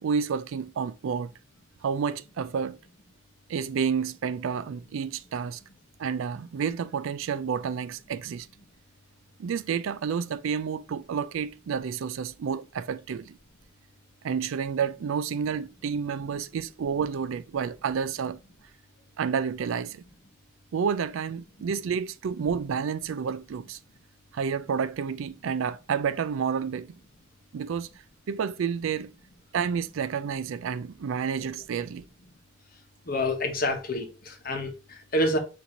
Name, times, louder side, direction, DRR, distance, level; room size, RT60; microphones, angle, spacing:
voice 1, 0.0-1.3 1.8-2.8 3.5-5.6 6.0-8.5 9.4-13.4 14.2-18.4 19.2-20.0 20.7-23.8 24.3-26.9 27.5-27.9 28.3-29.1 29.5-32.0, right 6 dB, 70° right, 0.3 m, -30 dB
voice 2, 33.1-35.4, left 1 dB, 45° left, 0.9 m, -28 dB
4.5 x 2.7 x 3.7 m
head